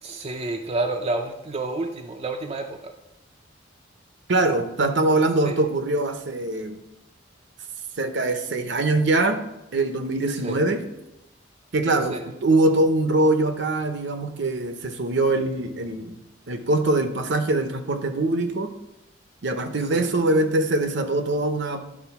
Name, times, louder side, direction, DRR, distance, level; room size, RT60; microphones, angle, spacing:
voice 1, 0.0-2.9 5.4-5.6 10.4-10.6 12.1-12.2 19.9-20.1, right 2 dB, 30° right, 3 dB, 0.5 m, -29 dB
voice 2, 4.3-6.8 8.0-9.4 9.7-10.8 11.7-16.2 16.5-18.7 19.4-21.8, right 2 dB, 60° right, 8 dB, 0.8 m, -23 dB
11.0 x 3.7 x 5.9 m, 0.91 s
head